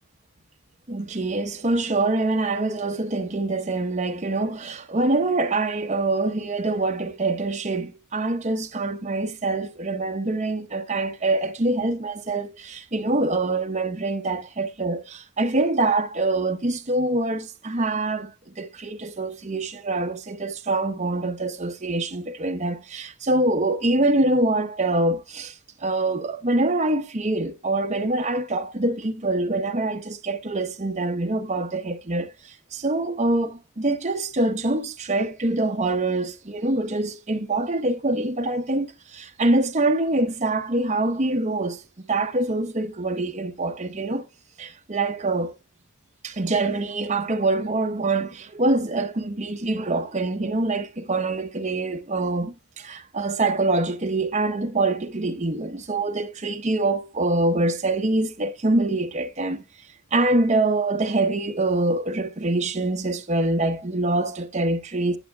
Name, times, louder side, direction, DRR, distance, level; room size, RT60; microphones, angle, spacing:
voice 1, 0.9-25.5 25.8-32.3 32.7-41.8 42.1-44.2 44.6-45.5 46.2-59.6 60.1-65.2, right 2 dB, 30° right, 0.8 m, -25 dB
11.0 x 6.8 x 2.2 m
head